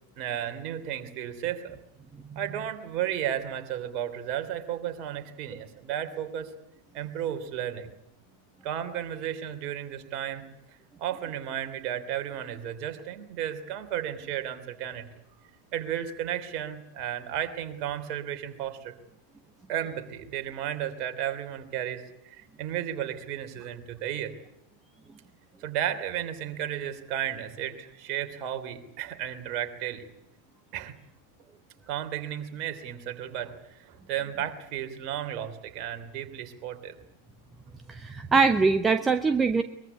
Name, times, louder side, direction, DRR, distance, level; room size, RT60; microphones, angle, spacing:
voice 1, 0.2-1.8 2.3-6.5 6.9-7.9 8.6-10.4 11.0-15.1 15.7-18.9 19.7-24.3 25.6-30.1 30.7-30.9 31.9-37.0, right 10 dB, 40° right, 7 dB, 3.1 m, -33 dB
voice 2, 37.9-39.6, right 4 dB, 15° right, 9 dB, 1.0 m, -22 dB
23.0 x 22.0 x 9.8 m, 0.80 s
figure-of-eight pair, 90°, 0 cm